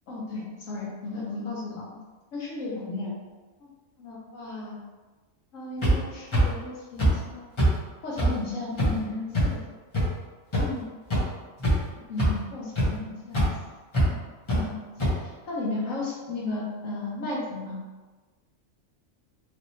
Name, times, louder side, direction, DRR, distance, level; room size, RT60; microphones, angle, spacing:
voice 1, 0.1-2.0 2.3-3.2 3.6-3.7 4.0-4.8 5.5-7.6 8.0-9.6 10.6-10.8 12.1-13.4 14.0-14.1 14.5-14.7 15.2-17.8, left 2 dB, 70° left, -5 dB, 1.3 m, -34 dB
sound 1, 5.8-5.9 6.3-6.4 7.0-7.1 7.6-7.7 8.2-8.3 8.8-8.9 9.3-9.4 9.9-10.0 10.5-10.6 11.1-11.2 11.6-11.9 12.2-12.3 12.8-12.9 13.3-13.5 13.9-14.1 14.5-14.6 15.0-15.1, right 1 dB, 25° left, 0.9 m, -21 dB
3.2 x 2.9 x 2.8 m, 1.3 s
omnidirectional pair, 1.4 m